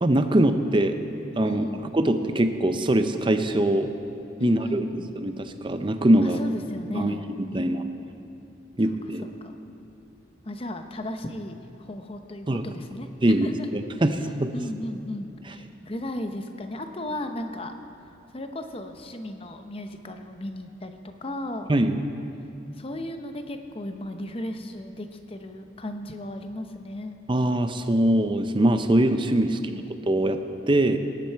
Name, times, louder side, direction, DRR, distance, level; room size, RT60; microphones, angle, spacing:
voice 1, 0.0-1.0 1.4-1.7 1.9-3.9 4.4-4.8 5.2-6.4 6.9-7.1 7.5-7.8 8.8-9.2 12.5-12.6 13.2-14.5 21.7-22.0 27.3-29.6 29.9-30.4 30.7-31.0, right 1 dB, 25° right, 8 dB, 0.6 m, -22 dB
voice 2, 1.4-1.9 4.4-5.1 6.2-8.0 9.2-9.6 10.4-13.1 13.4-13.7 14.5-17.7 18.3-21.7 22.8-27.2 29.4-29.9, left 1 dB, 30° left, 6 dB, 0.8 m, -35 dB
20.0 x 10.5 x 4.6 m, 2.8 s
head